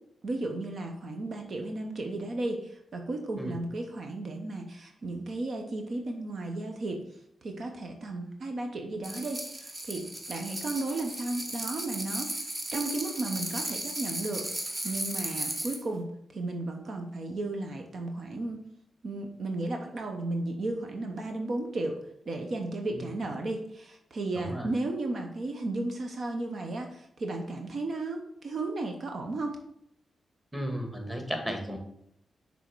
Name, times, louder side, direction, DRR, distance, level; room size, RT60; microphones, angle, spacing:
voice 1, 0.2-7.0 7.4-12.3 12.7-14.5 14.8-16.1 16.3-18.6 19.0-22.0 22.3-29.6, right 2 dB, 60° right, 4 dB, 0.8 m, -34 dB
sound 1, 9.0-15.8, right 1 dB, 35° right, 1.3 m, -36 dB
voice 2, 24.3-24.7 30.5-31.8, equal, 10° right, 3 dB, 1.5 m, -34 dB
6.2 x 3.5 x 4.6 m, 0.75 s
cardioid pair, 65°, 0 cm